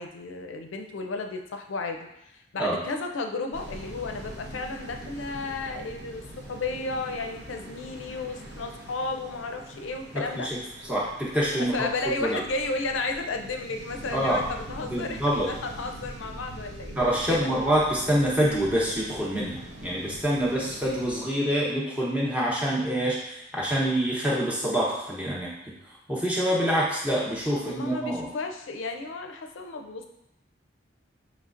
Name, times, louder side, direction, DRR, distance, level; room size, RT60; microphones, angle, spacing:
voice 1, 0.0-2.1 2.5-10.5 11.6-16.9 17.3-17.5 27.5-30.1, left 3 dB, 85° left, 4 dB, 0.5 m, -33 dB
sound 1, 3.5-21.2, right 1 dB, 60° right, 0.7 m, -43 dB
voice 2, 10.1-10.6 10.9-11.9 12.2-12.4 14.1-14.4 14.9-15.5 17.0-25.5 26.1-28.3, equal, 5° right, -6 dB, 0.8 m, -26 dB
5.6 x 3.2 x 2.5 m, 0.87 s
head